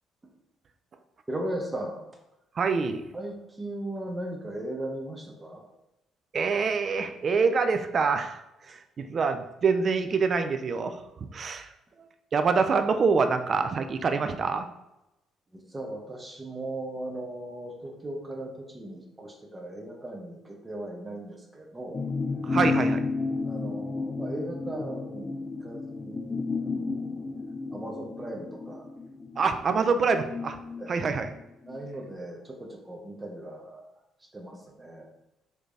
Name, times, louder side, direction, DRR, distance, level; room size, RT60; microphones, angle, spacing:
voice 1, 1.3-2.1 3.1-5.7 15.5-22.0 23.4-27.2 27.7-28.9 30.8-31.0 31.7-33.8 34.3-35.1, right 1 dB, 20° right, 2 dB, 0.8 m, -38 dB
voice 2, 2.6-3.1 6.3-8.4 8.7-11.0 11.3-11.7 12.3-14.7 22.4-23.0 29.4-30.6 30.9-31.3, right 5 dB, 50° right, 8 dB, 0.3 m, -25 dB
sound 1, 21.9-31.8 32.1-32.2, left 3 dB, 35° left, 0.3 m, -32 dB
3.3 x 3.1 x 2.6 m, 0.91 s
supercardioid pair, 60°, 0 cm